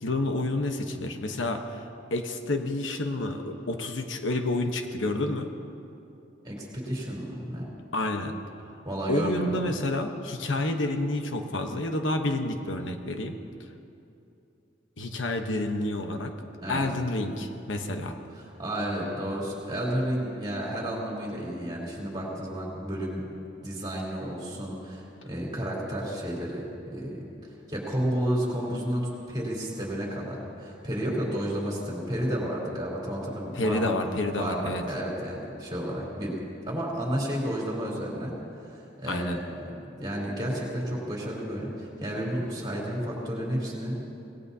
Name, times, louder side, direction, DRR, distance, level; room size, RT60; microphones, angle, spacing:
voice 1, 0.0-1.8 2.1-5.5 7.9-8.3 9.1-13.4 15.0-16.3 16.7-18.1 33.5-34.8 39.1-39.4, left 2 dB, 80° left, 5 dB, 1.1 m, -29 dB
voice 2, 6.4-7.7 8.9-9.7 16.6-16.9 18.3-23.2 23.6-27.2 27.7-33.9 34.3-36.4 36.7-38.3 38.6-39.5 39.9-44.0, equal, 20° right, -4 dB, 3.6 m, -31 dB
25.5 x 18.5 x 2.8 m, 2.7 s
head